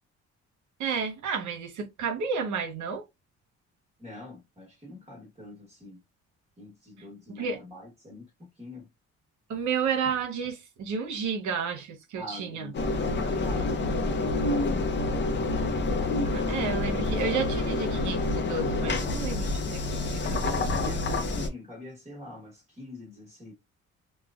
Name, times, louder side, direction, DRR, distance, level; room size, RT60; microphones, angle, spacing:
voice 1, 0.8-3.0 7.3-7.6 9.5-12.7 16.2-20.7, right 6 dB, 70° right, 0.9 m, -31 dB
voice 2, 4.0-6.0 6.6-8.9 12.2-14.9 20.2-23.5, left 1 dB, 20° right, 1.2 m, -44 dB
Engine, 12.7-21.5, left 2 dB, 40° left, 0.6 m, -28 dB
3.1 x 2.2 x 2.4 m
cardioid pair, 90°, 30 cm